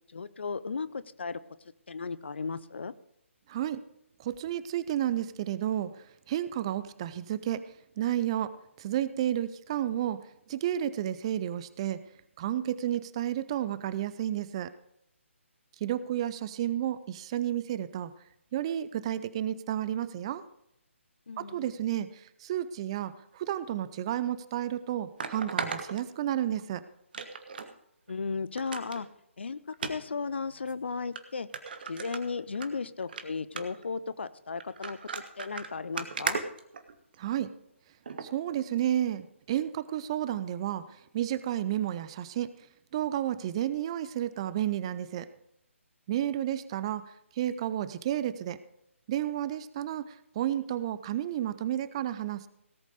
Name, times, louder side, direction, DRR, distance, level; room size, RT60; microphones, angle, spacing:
voice 1, 0.1-1.4 1.9-2.9 21.3-21.7 28.1-29.1 29.4-31.5 31.9-36.4, left 4 dB, 55° left, 16 dB, 0.7 m, -35 dB
voice 2, 3.5-3.9 4.2-12.0 12.4-14.7 15.8-18.1 18.5-20.4 21.4-26.8 37.2-37.5 38.2-42.7 42.9-45.3 46.1-48.6 49.1-52.5, right 11 dB, 25° right, 15 dB, 0.5 m, -32 dB
sound 1, 24.1-24.2 25.2-26.6 27.1-27.7 28.1-28.2 28.6-29.0 29.7-29.9 30.7-30.8 31.2-31.3 31.5-32.7 33.0-33.2 33.6-33.9 34.6-37.3 38.1-38.3 38.8-38.9, right 5 dB, 45° right, 1.3 m, -36 dB
17.5 x 8.3 x 5.0 m, 0.77 s
figure-of-eight pair, 140°, 7 cm